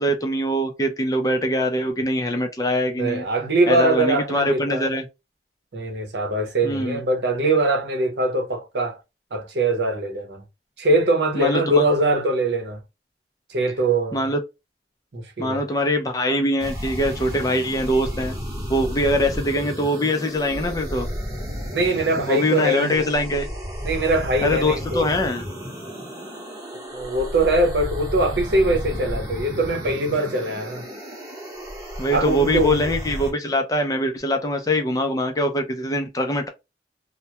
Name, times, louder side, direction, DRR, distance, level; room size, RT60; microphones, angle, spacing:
voice 1, 0.0-3.2 3.7-5.1 6.6-7.0 11.3-11.8 14.1-14.4 15.4-18.3 18.7-21.1 22.3-23.5 24.4-25.5 32.0-36.5, equal, 20° left, 0.4 m, -23 dB
voice 2, 3.0-4.9 5.7-9.0 9.3-10.4 10.8-12.8 13.5-14.3 15.1-15.6 21.7-23.1 23.8-25.1 26.9-30.9 32.1-32.9, right 2 dB, 75° right, 0.7 m, -22 dB
sound 1, 16.6-33.3, equal, 20° right, 0.8 m, -32 dB
2.2 x 2.1 x 2.8 m
head